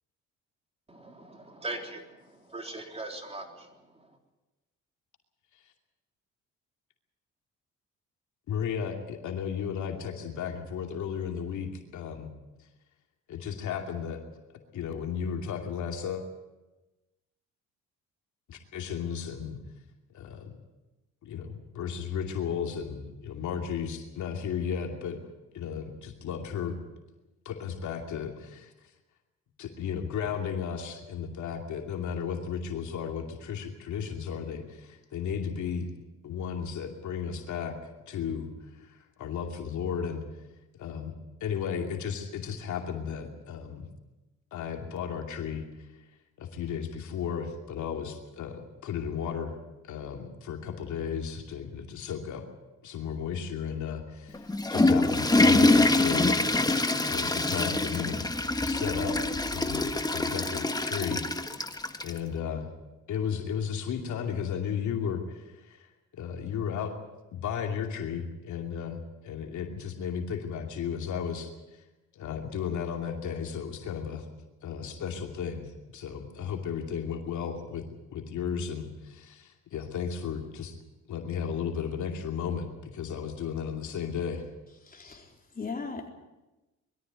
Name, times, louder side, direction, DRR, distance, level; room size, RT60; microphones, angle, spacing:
voice 1, 0.9-4.2, right 2 dB, 20° right, 3 dB, 3.7 m, -41 dB
voice 2, 8.5-12.3 13.3-14.2 14.7-16.2 18.5-19.6 20.1-20.6 21.2-25.2 25.5-26.8 27.4-28.7 29.6-35.9 36.2-37.8 38.1-40.2 40.8-41.1 41.4-43.9 44.5-45.6 46.4-49.5 49.8-52.4 52.8-58.3 58.6-59.2 59.5-61.7 62.0-62.7 63.1-65.9 66.2-66.9 67.3-71.8 72.1-74.3 74.6-77.8 78.1-80.8 81.1-84.4, left 7 dB, 75° left, 3 dB, 2.7 m, -34 dB
Water / Toilet flush, 54.3-62.2, left 2 dB, 15° left, 1.4 m, -25 dB
voice 3, 84.8-86.1, left 4 dB, 30° left, 1 dB, 4.3 m, -38 dB
22.0 x 13.5 x 9.4 m, 1.1 s
cardioid pair, 90°, 30 cm